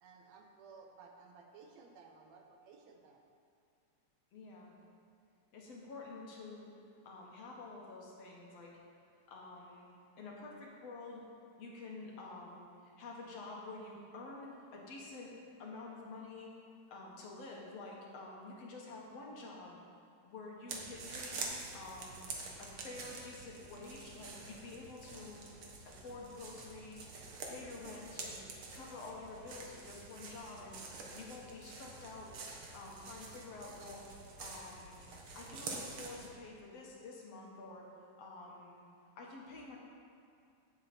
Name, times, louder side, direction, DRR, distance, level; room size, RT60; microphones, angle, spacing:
voice 1, 0.0-3.2, right 4 dB, 70° right, 3 dB, 1.9 m, -57 dB
voice 2, 4.3-4.8 5.5-6.6 7.0-8.7 9.3-9.9 10.2-11.2 11.6-15.3 15.6-16.5 16.9-19.8 20.2-21.4 21.7-22.3 22.6-25.4 25.9-27.1 27.4-28.4 28.7-30.8 31.1-32.3 32.7-34.1 34.4-35.0 35.4-37.8 38.2-38.8 39.2-39.8, left 3 dB, 60° left, -2 dB, 2.5 m, -49 dB
sound 1, 20.7-36.3, right 3 dB, 55° right, 1.8 m, -47 dB
15.0 x 7.9 x 4.4 m, 2.5 s
omnidirectional pair, 3.3 m